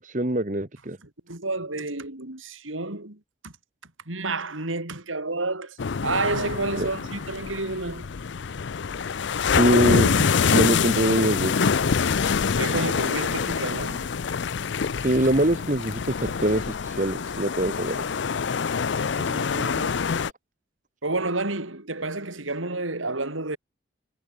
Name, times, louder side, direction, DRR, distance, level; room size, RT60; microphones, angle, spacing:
voice 1, 0.0-1.0 6.8-6.9 9.5-10.2 10.5-11.7 15.0-18.0, right 1 dB, 40° right, 1.5 m, -23 dB
voice 2, 1.0-3.5 4.1-8.1 10.2-10.3 12.6-14.1 19.1-20.2 21.0-23.6, right 2 dB, 85° right, 4.1 m, -30 dB
sound 1, 5.8-20.3, left 6 dB, 65° left, 0.5 m, -25 dB
head